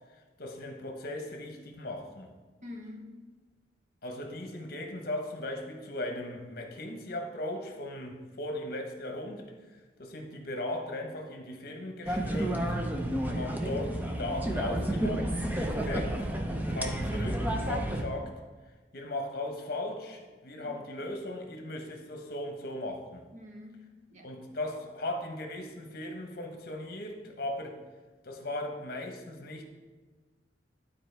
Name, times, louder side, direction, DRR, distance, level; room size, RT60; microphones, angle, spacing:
voice 1, 0.4-2.3 4.0-9.5 10.0-12.8 13.4-16.4 16.7-18.3 18.9-23.2 24.2-27.8 28.2-29.6, left 1 dB, 60° left, 3 dB, 1.1 m, -37 dB
voice 2, 2.6-3.2 13.3-13.7 20.6-21.0 23.3-24.3, left 2 dB, 45° right, 1 dB, 1.1 m, -47 dB
sound 1, 12.0-18.0, right 1 dB, 10° right, 0.6 m, -31 dB
12.0 x 4.3 x 3.4 m, 1.3 s
head